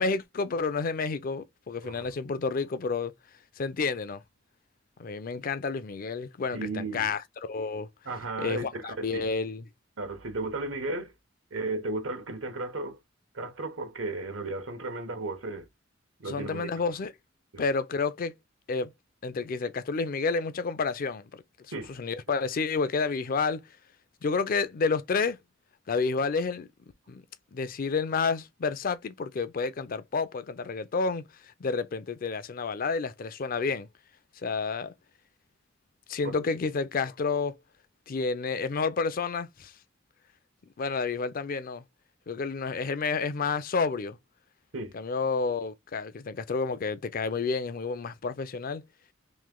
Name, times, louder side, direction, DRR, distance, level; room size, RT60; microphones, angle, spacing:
voice 1, 0.0-3.1 3.6-4.2 5.0-7.9 8.4-9.6 16.2-17.1 17.6-18.3 18.7-18.9 19.2-21.4 21.9-23.6 24.2-25.4 25.9-26.7 27.1-27.2 27.5-33.9 34.4-34.9 36.1-37.5 38.1-39.7 40.8-41.8 42.3-44.2 44.9-48.8, left 4 dB, 45° left, 0.4 m, -30 dB
voice 2, 6.5-7.1 8.0-9.2 10.0-11.1 11.5-13.0 13.3-15.7 16.2-16.7 17.5-17.6 21.7-22.0 36.2-36.3 44.7-44.9, right 2 dB, 85° right, 1.1 m, -34 dB
3.2 x 3.0 x 3.6 m
head